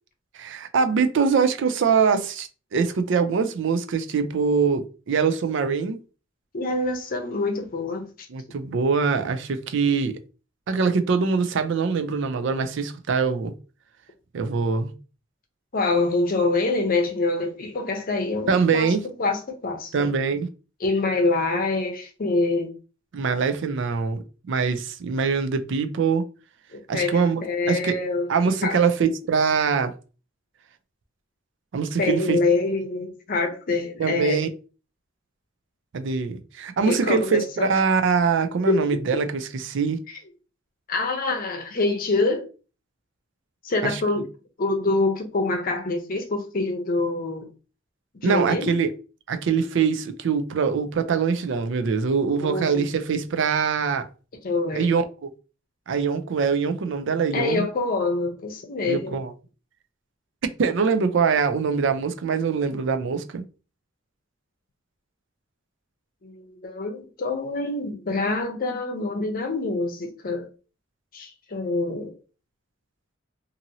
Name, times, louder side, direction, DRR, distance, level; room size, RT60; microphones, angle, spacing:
voice 1, 0.3-6.0 8.3-10.2 10.7-13.5 14.3-14.9 18.5-19.1 19.9-20.5 23.1-26.3 26.9-27.9 28.3-29.9 31.7-32.4 34.0-34.5 35.9-40.0 43.8-44.0 48.2-48.9 49.3-54.1 54.8-55.3 55.9-57.7 58.9-59.3 60.6-63.4, right 5 dB, 65° right, 0.4 m, -23 dB
voice 2, 6.5-8.3 15.7-20.1 20.8-22.7 26.7-28.3 28.6-28.8 32.0-34.5 36.8-37.7 38.6-39.0 40.9-42.5 43.6-44.3 44.6-47.5 48.2-48.8 52.4-52.8 54.4-54.9 57.3-59.2 66.2-70.5 71.1-72.2, left 3 dB, 45° left, 0.6 m, -25 dB
2.8 x 2.6 x 2.6 m
head